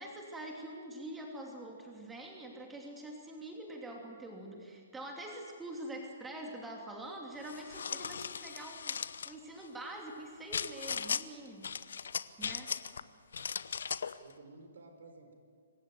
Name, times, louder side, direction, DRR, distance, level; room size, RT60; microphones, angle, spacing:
voice 1, 0.0-11.7 12.4-12.7, right 1 dB, 10° right, 1 dB, 2.9 m, -45 dB
sound 1, 7.4-9.3 10.5-11.2 11.6-13.0 13.3-14.2, left 6 dB, 65° left, 0.8 m, -37 dB
voice 2, 12.4-12.8 14.2-15.3, right 3 dB, 65° right, 6 dB, 4.6 m, -55 dB
26.5 x 15.5 x 9.4 m, 2.1 s
figure-of-eight pair, 125°, 0 cm